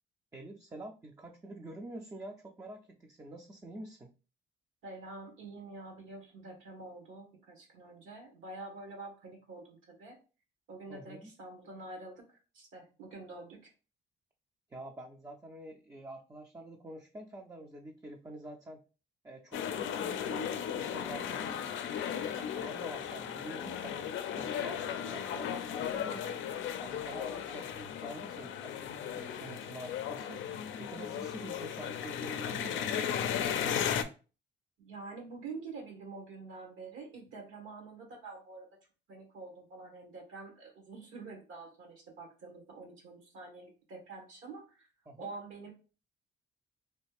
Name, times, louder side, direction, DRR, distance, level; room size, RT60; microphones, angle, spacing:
voice 1, 0.3-4.1 10.9-11.3 14.7-18.8 19.2-21.7 22.0-24.1 24.4-26.4 26.8-30.4 30.8-33.8 45.1-45.3, right 1 dB, 15° right, 2 dB, 0.4 m, -47 dB
voice 2, 4.8-10.2 10.7-13.7 34.8-38.7 39.1-44.9 45.2-45.7, right 3 dB, 85° right, 1 dB, 1.4 m, -47 dB
sound 1, 19.5-34.0, left 9 dB, 75° left, 0.4 m, -36 dB
3.1 x 2.4 x 3.3 m, 0.34 s
cardioid pair, 90°, 20 cm